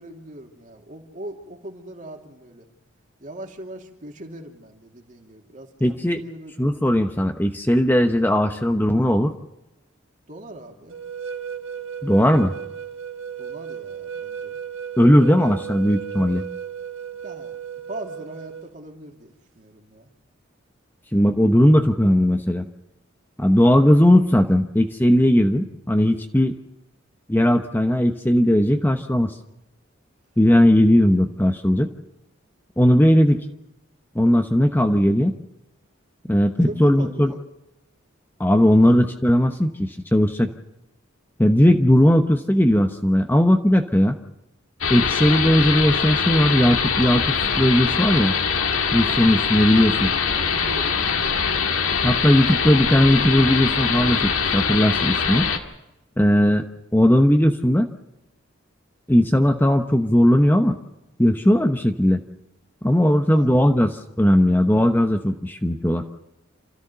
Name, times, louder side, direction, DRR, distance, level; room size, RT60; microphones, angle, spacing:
voice 1, 0.0-2.7 3.2-6.5 10.3-11.0 13.4-14.6 15.2-15.5 17.2-17.6 17.9-20.1 36.6-37.4 38.7-39.0 50.3-51.0 63.2-63.5, right 1 dB, 40° right, 2 dB, 2.8 m, -40 dB
voice 2, 5.8-6.2 6.6-9.3 12.0-12.5 15.0-16.5 21.1-22.7 23.4-26.5 27.3-29.3 30.4-31.9 32.8-33.4 34.1-35.3 36.3-37.3 38.4-40.5 41.4-44.2 44.9-47.3 47.6-48.3 48.9-50.1 52.0-55.5 56.2-56.6 56.9-57.9 59.1-60.8 61.2-62.2 62.8-66.0, equal, 10° left, 5 dB, 0.9 m, -18 dB
sound 1, 10.9-18.7, right 8 dB, 75° right, 1.3 m, -34 dB
sound 2, 44.8-55.6, left 6 dB, 90° left, 2.1 m, -23 dB
29.0 x 14.0 x 6.8 m, 0.94 s
head